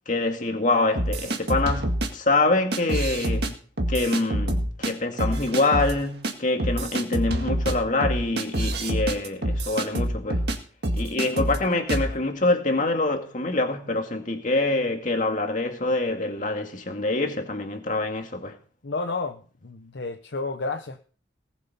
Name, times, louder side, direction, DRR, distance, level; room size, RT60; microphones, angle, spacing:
voice 1, 0.1-3.5 3.9-10.4 10.9-18.5, left 2 dB, 40° left, 2.2 m, -25 dB
sound 1, 1.0-2.1 2.7-3.5 3.8-4.9 5.2-5.9 6.2-6.3 6.6-10.6 10.8-11.6 11.9-12.1, right 1 dB, 55° right, 1.9 m, -26 dB
voice 2, 18.8-21.0, left 3 dB, 60° left, 0.8 m, -31 dB
19.0 x 7.5 x 5.4 m
head